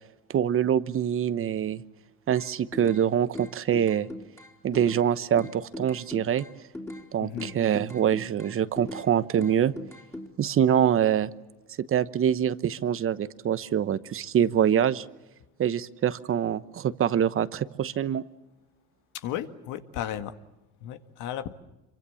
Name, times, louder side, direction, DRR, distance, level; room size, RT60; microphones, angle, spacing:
voice 1, 0.3-1.8 2.3-4.1 4.6-6.4 7.1-9.7 10.4-11.3 11.9-15.0 15.6-18.2, right 9 dB, 40° right, 14 dB, 1.1 m, -25 dB
sound 1, 2.4-3.0 3.3-5.1 5.4-7.1 7.4-9.1 9.4-10.3, left 1 dB, 10° left, 3.4 m, -39 dB
voice 2, 7.2-7.5 19.1-20.3 20.8-21.5, left 11 dB, 70° left, 9 dB, 1.9 m, -34 dB
26.5 x 24.0 x 7.1 m, 1.0 s
supercardioid pair, 95°, 32 cm